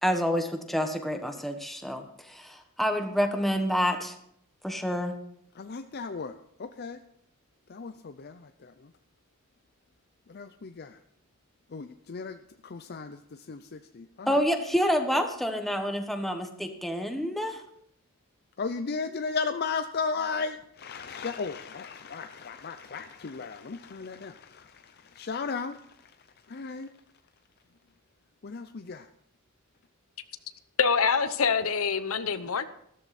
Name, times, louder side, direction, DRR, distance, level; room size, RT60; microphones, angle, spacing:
voice 1, 0.0-4.1 4.6-5.1 14.3-17.6, equal, ahead, 5 dB, 1.2 m, -28 dB
voice 2, 5.6-7.0 7.7-8.9 10.3-11.0 11.7-14.4 18.6-26.1 26.5-26.9 28.4-29.1, left 4 dB, 50° left, 9 dB, 0.5 m, -36 dB
voice 3, 30.8-32.6, left 6 dB, 80° left, 12 dB, 0.9 m, -25 dB
14.5 x 13.5 x 4.2 m, 0.72 s
head